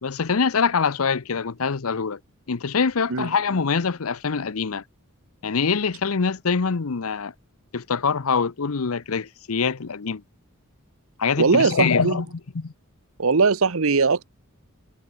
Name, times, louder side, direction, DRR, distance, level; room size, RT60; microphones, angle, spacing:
voice 1, 0.0-2.2 2.5-4.8 5.4-7.3 7.7-10.2 11.2-12.3 12.5-12.7, left 5 dB, 80° left, 0.8 m, -24 dB
voice 2, 11.4-12.2 13.2-14.3, right 4 dB, 75° right, 0.9 m, -20 dB
head